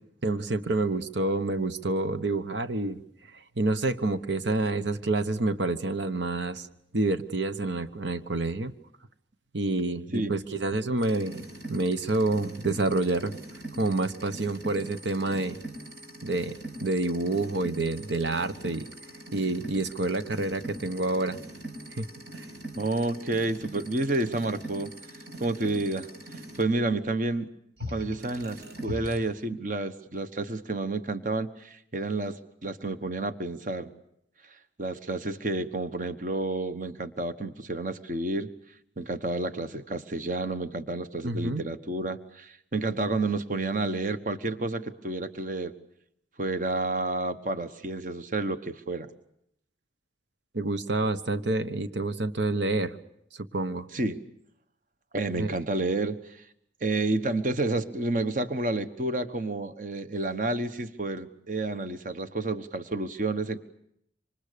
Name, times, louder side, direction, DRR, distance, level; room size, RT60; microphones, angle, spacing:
voice 1, 0.2-3.0 3.3-6.7 6.9-8.7 9.5-11.4 11.7-13.3 13.8-15.6 16.2-18.8 19.3-21.4 21.9-22.1 22.3-22.5 41.2-41.6 50.5-53.0 53.3-53.9 55.4-55.6, right 2 dB, 85° right, 10 dB, 1.1 m, -28 dB
sound 1, 11.0-26.6 27.8-29.2, right 1 dB, 70° right, 6.3 m, -42 dB
voice 2, 22.8-24.9 25.4-27.5 27.9-33.9 34.5-38.5 39.0-45.7 46.4-49.1 53.9-54.2 55.1-56.5 56.8-63.6, right 2 dB, 45° right, 10 dB, 1.2 m, -30 dB
27.0 x 25.5 x 6.8 m, 0.74 s
head